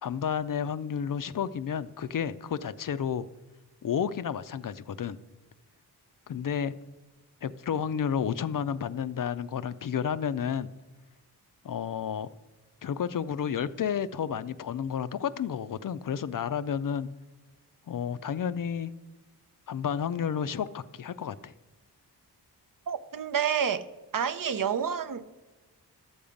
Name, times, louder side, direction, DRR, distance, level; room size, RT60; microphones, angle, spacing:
voice 1, 0.0-3.3 3.8-5.2 6.3-6.7 7.4-10.7 11.6-12.3 12.8-17.1 17.9-18.9 19.7-21.5, left 8 dB, 55° left, 0.4 m, -31 dB
voice 2, 22.9-23.8 24.1-25.2, right 7 dB, 55° right, 0.7 m, -28 dB
12.5 x 7.1 x 5.1 m
wide cardioid pair, 130°, 41 cm